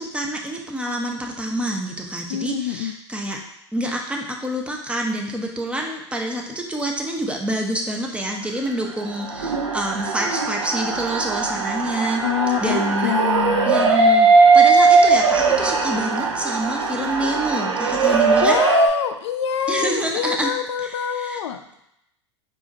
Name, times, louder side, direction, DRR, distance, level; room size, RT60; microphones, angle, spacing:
voice 1, 0.1-3.4 3.7-12.2 12.6-13.1 13.7-14.3 14.5-18.6 19.7-20.5 20.8-21.4, right 1 dB, 10° right, 1 dB, 0.8 m, -27 dB
voice 2, 2.3-2.9 12.2-13.9 18.0-21.6, left 10 dB, 75° left, 8 dB, 0.4 m, -26 dB
sound 1, 9.0-18.9, right 4 dB, 85° right, 0.6 m, -18 dB
4.8 x 2.6 x 4.1 m, 0.79 s
hypercardioid pair, 90°, 15 cm